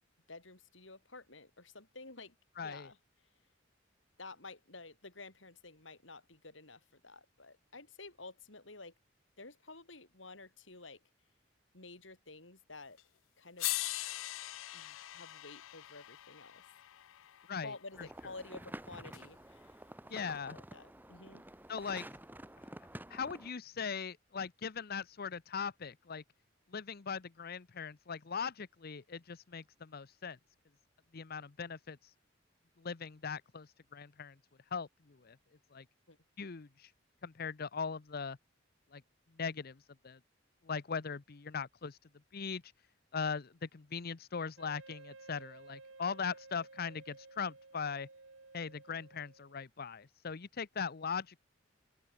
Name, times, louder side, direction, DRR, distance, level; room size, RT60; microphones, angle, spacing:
voice 1, 0.3-3.0 4.2-8.9 9.4-11.0 11.7-13.0 13.4-13.7 14.7-16.6 17.6-19.8 20.1-21.4 36.1-36.2, left 3 dB, 70° left, 6.1 m, -51 dB
voice 2, 2.6-2.9 17.5-17.7 20.1-20.6 21.7-22.1 23.1-26.2 26.7-30.4 31.1-32.1 32.8-34.3 34.7-34.9 35.2-35.4 35.7-35.8 36.4-36.9 37.2-38.4 38.9-39.0 39.4-39.7 40.0-40.2 40.7-42.0 42.3-42.7 43.1-48.1 48.5-51.4, left 6 dB, 50° left, 0.8 m, -40 dB
sound 1, 13.0-13.1 13.6-17.8 19.1-19.2, left 18 dB, 90° left, 0.4 m, -41 dB
sound 2, 17.9-23.5, right 1 dB, 10° right, 2.3 m, -50 dB
Wind instrument woodwind instrument, 44.6-49.6, right 3 dB, 85° right, 2.7 m, -55 dB
open air
head